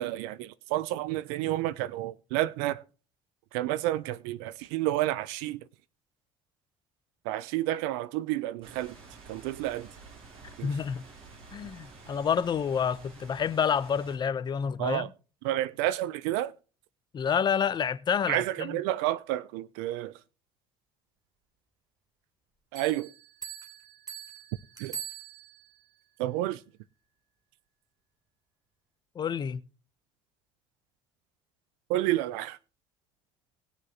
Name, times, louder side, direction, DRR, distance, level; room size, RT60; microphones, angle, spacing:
voice 1, 0.0-2.8 3.5-5.6 7.2-9.0 9.3-9.9 10.6-10.7 14.8-15.1 15.4-16.5 18.3-20.1 22.7-23.1 24.8-25.0 26.2-26.6 31.9-32.6, right 15 dB, 80° right, 0.7 m, -30 dB
sound 1, 8.6-14.2, right 3 dB, 60° right, 7.5 m, -50 dB
voice 2, 10.6-11.0 11.5-15.1 17.1-18.8 29.1-29.6, left 7 dB, 40° left, 0.9 m, -28 dB
Bell, 22.7-25.8, right 8 dB, 35° right, 3.4 m, -43 dB
19.5 x 6.7 x 3.0 m
hypercardioid pair, 70°, 11 cm